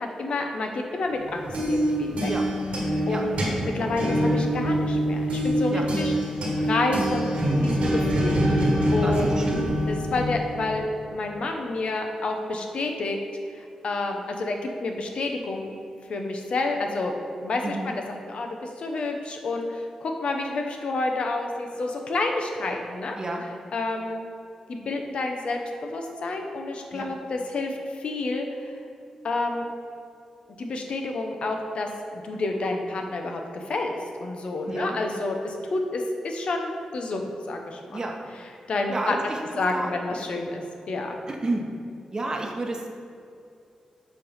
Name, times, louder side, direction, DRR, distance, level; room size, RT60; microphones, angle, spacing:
voice 1, 0.0-2.3 3.1-6.1 6.6-7.3 7.6-8.6 8.9-9.5 9.9-13.2 13.6-15.7 16.1-17.1 17.4-23.2 23.7-24.2 24.7-28.7 29.2-29.6 30.6-31.9 32.1-33.9 34.2-38.0 38.7-39.3 39.6-40.6 40.9-41.2, left 2 dB, 65° left, 3 dB, 0.7 m, -29 dB
sound 1, 1.2-10.9, equal, 80° right, 1.6 m, -25 dB
voice 2, 9.0-9.7 17.6-17.9 23.2-23.4 26.9-27.1 34.7-35.0 37.9-38.3 38.9-39.9 41.3-41.6 42.1-42.9, right 2 dB, 35° right, 1 dB, 0.9 m, -31 dB
7.4 x 3.3 x 5.5 m, 2.4 s
cardioid pair, 85°, 2 cm